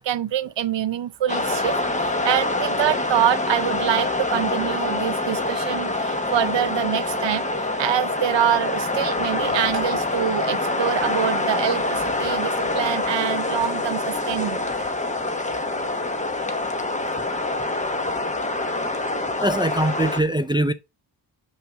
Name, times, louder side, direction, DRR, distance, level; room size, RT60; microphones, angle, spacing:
voice 1, 0.0-14.9, right 11 dB, 85° right, 0.7 m, -25 dB
sound 1, 1.3-20.2, left 2 dB, 15° left, 1.0 m, -25 dB
voice 2, 19.4-20.7, right 1 dB, 10° right, 0.3 m, -22 dB
7.5 x 5.7 x 3.5 m
wide cardioid pair, 180°, 42 cm